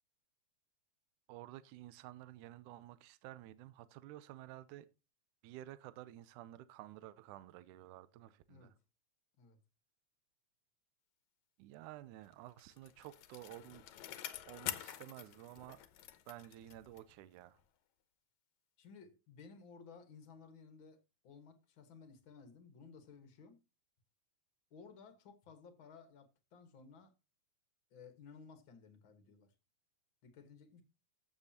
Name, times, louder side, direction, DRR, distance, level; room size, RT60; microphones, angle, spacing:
voice 1, 1.3-4.9 5.4-8.7 11.6-13.9 14.5-15.8 16.3-17.6, right 14 dB, 80° right, 1.9 m, -52 dB
Bicycle, 12.3-17.2 17.6-17.7, left 12 dB, 70° left, 1.9 m, -47 dB
voice 2, 18.8-23.6 24.7-27.1 27.9-29.5 30.2-30.8, left 5 dB, 50° left, 1.5 m, -57 dB
14.5 x 7.2 x 2.8 m
omnidirectional pair, 3.8 m